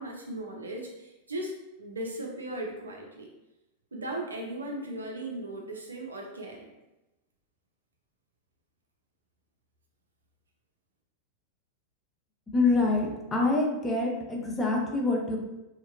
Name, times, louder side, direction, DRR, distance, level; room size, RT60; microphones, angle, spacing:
voice 1, 0.0-3.3 3.9-6.7, right 1 dB, 75° right, 1 dB, 0.4 m, -37 dB
voice 2, 12.5-15.4, left 3 dB, 15° left, -1 dB, 0.5 m, -26 dB
2.7 x 2.1 x 2.4 m, 0.99 s
figure-of-eight pair, 90°, 0 cm